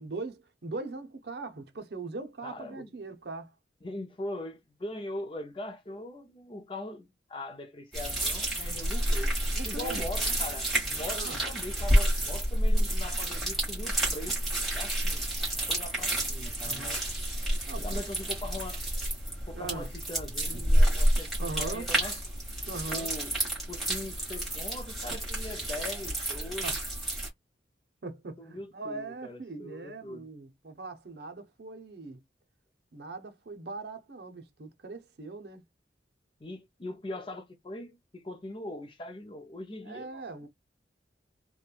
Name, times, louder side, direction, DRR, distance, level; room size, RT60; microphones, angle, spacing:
voice 1, 0.0-3.5 9.5-10.0 11.1-11.4 16.6-17.0 17.7-18.0 19.5-19.9 21.4-21.9 22.7-23.1 26.6-26.8 28.0-32.2 32.9-35.6 39.8-40.5, right 3 dB, 60° right, 0.6 m, -40 dB
voice 2, 2.4-2.9 3.8-9.4 9.6-15.3 15.7-17.0 17.8-18.8 19.5-22.2 22.9-23.3 23.7-26.8 28.4-30.3 36.4-40.2, left 1 dB, 30° left, 0.5 m, -41 dB
sound 1, 7.9-27.3, right 1 dB, ahead, 1.3 m, -29 dB
3.0 x 2.2 x 2.4 m
head